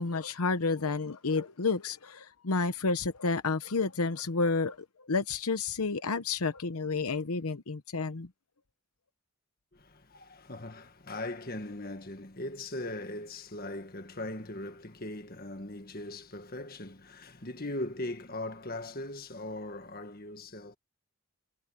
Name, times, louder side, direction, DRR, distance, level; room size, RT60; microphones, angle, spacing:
voice 1, 0.0-4.8 5.1-8.3, left 4 dB, 80° left, 0.9 m, -30 dB
voice 2, 9.7-20.8, left 1 dB, 40° left, 1.7 m, -39 dB
head